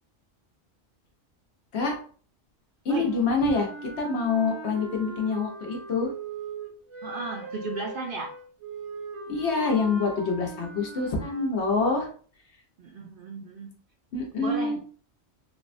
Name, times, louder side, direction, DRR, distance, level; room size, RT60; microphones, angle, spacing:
voice 1, 2.8-6.1 9.3-12.1 14.1-14.8, left 4 dB, 70° left, 1 dB, 1.0 m, -26 dB
sound 1, 2.9-11.6, right 4 dB, 85° right, 1.2 m, -40 dB
voice 2, 7.0-8.4 12.8-13.7 14.4-14.8, right 4 dB, 60° right, 1 dB, 0.6 m, -35 dB
3.4 x 2.1 x 2.5 m, 0.43 s
omnidirectional pair, 1.2 m